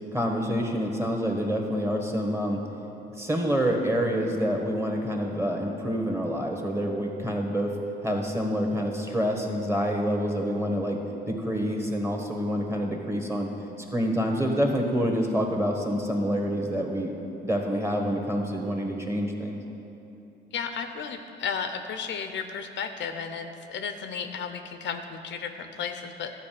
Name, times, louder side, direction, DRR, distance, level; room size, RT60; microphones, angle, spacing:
voice 1, 0.1-2.6 3.2-7.7 8.0-11.0 11.2-13.5 13.9-17.1 17.4-19.6, equal, 15° right, 1 dB, 1.5 m, -27 dB
voice 2, 20.5-26.3, left 6 dB, 65° left, 7 dB, 0.6 m, -34 dB
12.0 x 4.6 x 7.6 m, 3.0 s
cardioid pair, 90°, 20 cm